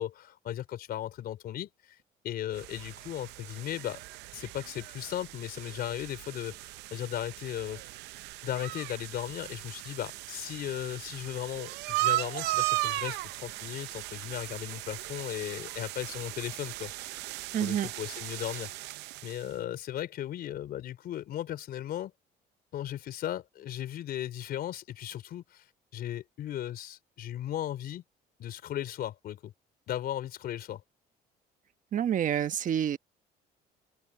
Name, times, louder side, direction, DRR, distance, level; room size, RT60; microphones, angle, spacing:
voice 1, 0.0-2.0 2.2-4.0 4.3-7.8 8.4-16.9 17.6-18.7 19.2-22.1 22.7-25.6 25.9-28.0 28.4-29.5 29.9-30.8, left 12 dB, 65° left, 4.2 m, -36 dB
sound 1, 2.5-19.5, right 19 dB, 90° right, 0.6 m, -37 dB
voice 2, 17.5-17.9 31.9-33.0, right 9 dB, 50° right, 1.2 m, -28 dB
open air
cardioid pair, 110°, 17 cm